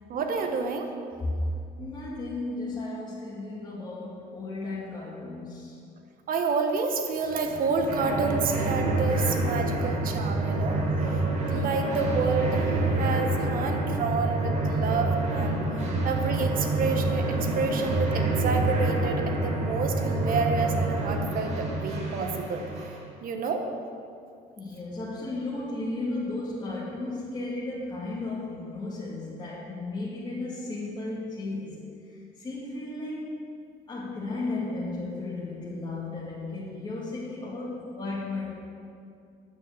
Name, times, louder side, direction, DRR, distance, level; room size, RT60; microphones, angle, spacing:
voice 1, 0.1-0.9 6.3-10.8 11.5-15.6 16.0-22.6 23.2-23.7, right 4 dB, 55° right, 4 dB, 1.3 m, -29 dB
voice 2, 1.8-5.7 24.6-31.8 32.1-33.3 33.9-38.5, left 2 dB, 25° left, -8 dB, 2.2 m, -34 dB
sound 1, 7.3-23.0, right 2 dB, 40° right, 2.3 m, -27 dB
9.7 x 6.1 x 7.5 m, 2.4 s
cardioid pair, 110°, 17 cm